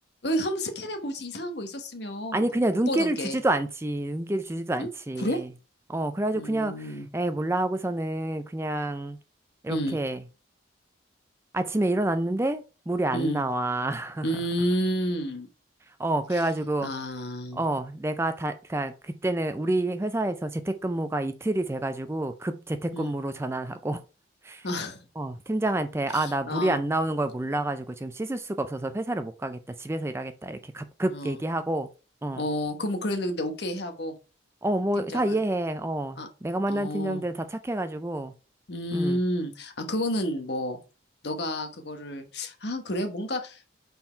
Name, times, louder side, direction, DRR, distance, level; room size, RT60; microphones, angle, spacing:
voice 1, 0.2-2.5 2.9-3.4 4.8-4.9 5.2-5.4 6.3-7.1 9.7-10.0 13.1-13.4 14.2-15.5 16.3-16.4 16.8-17.6 22.9-23.1 24.6-25.0 26.1-26.8 31.1-31.4 32.3-34.1 35.0-35.4 36.2-36.3 36.7-37.2 38.7-40.8 41.2-43.6, equal, 60° left, 1.1 m, -30 dB
voice 2, 2.3-5.5 5.9-9.2 9.6-10.2 11.5-14.3 16.0-16.9 17.5-24.0 24.4-24.7 25.2-31.9 32.2-32.4 34.6-38.3 38.9-39.2, right 1 dB, 15° right, 0.4 m, -28 dB
5.8 x 4.3 x 4.4 m
head